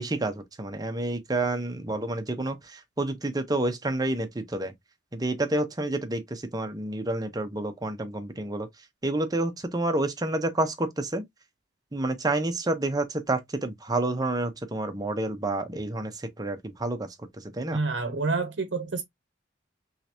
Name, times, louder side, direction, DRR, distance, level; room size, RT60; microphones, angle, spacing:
voice 1, 0.0-2.6 3.0-4.7 5.1-8.7 9.0-11.2 11.9-16.1 16.4-17.1 17.5-17.8, right 2 dB, 20° right, 0.8 m, -29 dB
voice 2, 17.7-19.0, right 3 dB, 85° right, 0.8 m, -28 dB
3.7 x 3.2 x 2.9 m
head